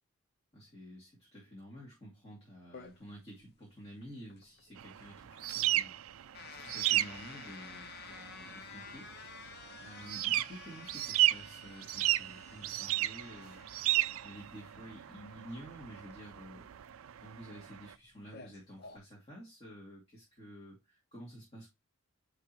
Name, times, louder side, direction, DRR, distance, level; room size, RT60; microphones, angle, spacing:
voice 1, 0.5-6.2 6.5-9.1 9.8-13.7 14.2-16.7 17.2-21.7, equal, 25° left, 2.5 m, -51 dB
sound 1, 2.7-19.0, left 6 dB, 50° left, 0.8 m, -53 dB
sound 2, 4.8-17.9, right 15 dB, 70° right, 0.4 m, -34 dB
10.0 x 3.8 x 3.0 m
head